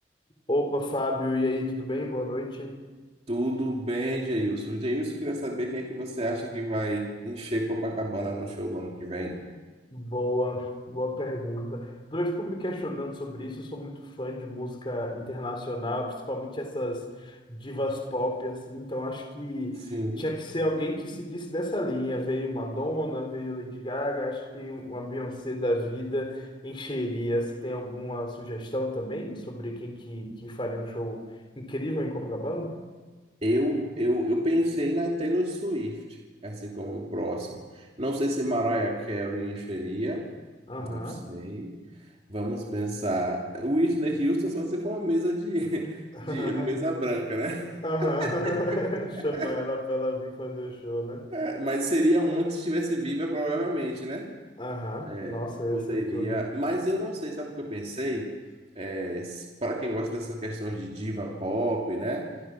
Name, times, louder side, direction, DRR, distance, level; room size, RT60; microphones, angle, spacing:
voice 1, 0.5-2.8 9.9-31.3 31.6-32.8 40.7-41.3 46.1-46.8 47.8-51.3 54.6-56.5, left 1 dB, 25° left, 4 dB, 3.9 m, -31 dB
voice 2, 3.3-9.4 19.9-20.3 33.4-36.2 36.4-40.3 40.8-41.8 42.3-48.8 49.2-49.5 51.3-54.3 55.0-58.3 58.8-62.3, equal, 30° right, -1 dB, 2.8 m, -29 dB
29.0 x 26.5 x 6.3 m, 1.3 s
head